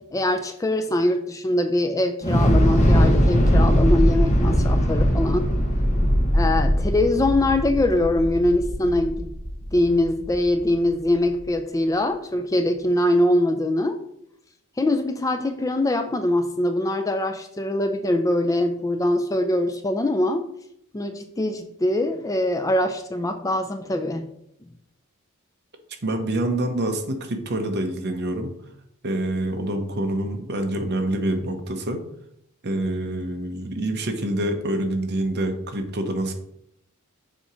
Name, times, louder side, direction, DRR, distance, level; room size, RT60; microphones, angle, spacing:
voice 1, 0.1-5.5 6.3-9.3 9.7-14.0 14.8-20.5 20.9-24.2, left 1 dB, 15° left, 7 dB, 0.3 m, -23 dB
Thunder / Explosion, 2.2-10.4, equal, 30° left, 1.0 m, -20 dB
voice 2, 26.0-28.5 29.0-32.0 32.6-36.3, right 1 dB, 50° right, 5 dB, 0.8 m, -26 dB
7.0 x 2.8 x 4.8 m, 0.74 s
head